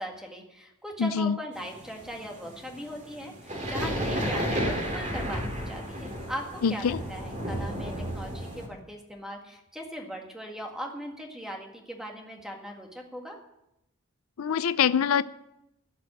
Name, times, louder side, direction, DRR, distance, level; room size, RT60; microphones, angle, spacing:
voice 1, 0.0-13.4, equal, ahead, 1 dB, 1.8 m, -39 dB
voice 2, 1.0-1.4 6.6-7.0 14.4-15.2, left 7 dB, 80° left, 15 dB, 0.4 m, -24 dB
sound 1, 1.5-8.7, equal, 35° right, 2.5 m, -32 dB
16.5 x 5.9 x 8.7 m, 0.86 s
head